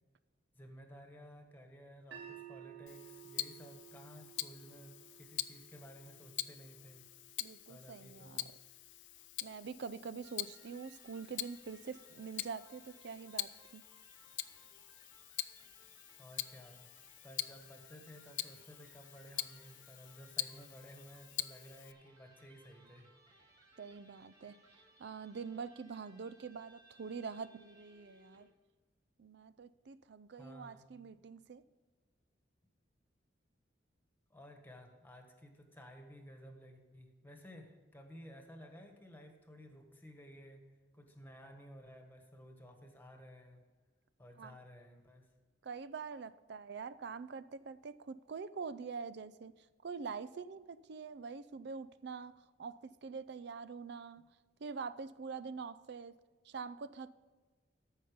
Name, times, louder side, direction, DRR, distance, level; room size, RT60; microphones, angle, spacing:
voice 1, 0.5-7.1 7.7-8.5 16.2-16.9 17.2-23.1 30.3-31.0 34.3-40.7 40.9-43.6 44.2-45.3, equal, 10° left, 4 dB, 1.5 m, -55 dB
sound 1, 2.1-8.3, right 10 dB, 85° right, 1.2 m, -56 dB
Tick-tock, 2.9-21.9, left 15 dB, 75° left, 0.5 m, -45 dB
voice 2, 7.4-8.4 9.4-13.8 23.8-24.6 25.0-28.5 29.2-31.6 44.4-44.6 45.6-49.5 49.8-54.2 54.6-56.2 56.4-57.1, right 5 dB, 65° right, 16 dB, 0.5 m, -45 dB
Electric guitar, 10.2-28.6, right 1 dB, 25° right, 2.1 m, -65 dB
14.0 x 5.6 x 5.2 m, 1.3 s
head